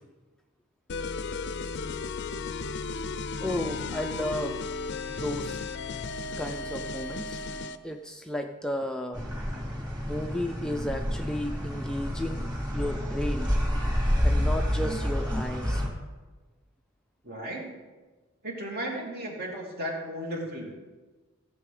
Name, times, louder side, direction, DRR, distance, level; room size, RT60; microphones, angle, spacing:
sound 1, 0.9-7.8, left 4 dB, 55° left, 0.5 m, -34 dB
voice 1, 3.4-4.6 5.1-5.6 6.4-7.4 7.8-9.3 10.0-12.5 12.7-13.5 14.2-15.8, left 1 dB, 5° left, 4 dB, 0.4 m, -33 dB
sound 2, 9.1-15.9, equal, 20° right, 2.9 m, -29 dB
voice 2, 17.2-17.7 18.4-20.7, right 1 dB, 50° right, -1 dB, 2.7 m, -35 dB
15.0 x 7.6 x 5.0 m, 1.3 s
head